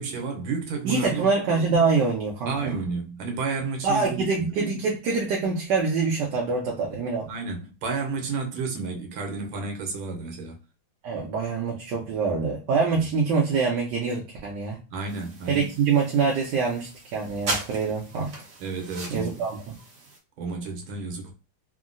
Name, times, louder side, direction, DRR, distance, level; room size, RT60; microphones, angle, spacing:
voice 1, 0.0-1.3 2.5-4.5 7.3-10.6 12.9-13.1 14.9-15.7 18.6-19.5 20.4-21.3, right 4 dB, 85° right, 1.5 m, -31 dB
voice 2, 0.8-2.7 3.8-7.3 11.0-14.8 15.5-18.3 19.1-19.6, right 4 dB, 70° right, 1.2 m, -25 dB
sound 1, 15.1-20.2, right 2 dB, 55° right, 0.8 m, -37 dB
3.7 x 2.1 x 2.5 m
omnidirectional pair, 2.2 m